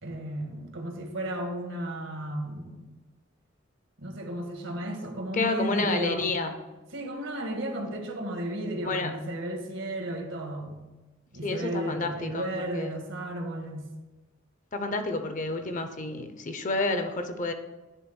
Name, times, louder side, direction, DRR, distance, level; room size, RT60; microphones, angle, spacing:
voice 1, 0.0-2.9 4.0-6.3 6.9-10.9 11.3-13.9, right 1 dB, 80° right, 2 dB, 1.6 m, -34 dB
voice 2, 5.3-6.5 8.8-9.1 11.4-12.9 14.7-17.5, left 3 dB, 40° left, 8 dB, 0.7 m, -30 dB
10.0 x 3.5 x 6.2 m, 1.1 s
head